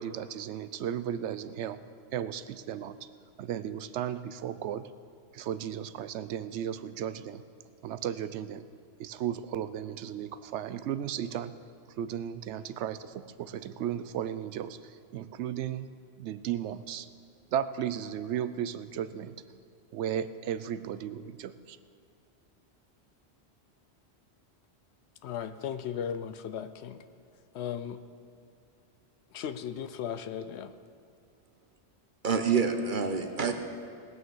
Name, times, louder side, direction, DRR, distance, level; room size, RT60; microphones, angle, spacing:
voice 1, 0.0-1.8 2.1-3.0 3.4-4.9 5.3-7.4 7.8-8.7 9.0-11.5 12.0-15.9 16.2-17.1 17.5-19.3 19.9-21.8, right 9 dB, 90° right, 14 dB, 0.9 m, -35 dB
voice 2, 25.2-27.1 27.5-28.0 29.3-30.7, left 8 dB, 75° left, 11 dB, 0.9 m, -36 dB
voice 3, 32.2-33.5, right 5 dB, 50° right, 7 dB, 0.9 m, -27 dB
19.0 x 6.4 x 7.2 m, 2.3 s
omnidirectional pair, 1.1 m